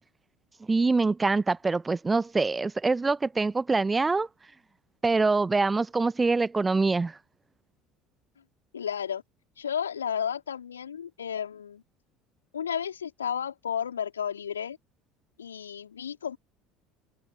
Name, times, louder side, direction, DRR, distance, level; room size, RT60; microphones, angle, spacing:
voice 1, 0.7-4.3 5.0-7.2, right 3 dB, 15° right, 0.9 m, -24 dB
voice 2, 8.7-9.2 9.6-11.8 12.5-14.8 15.4-16.4, left 8 dB, 75° left, 4.2 m, -32 dB
figure-of-eight pair, 65°, 0 cm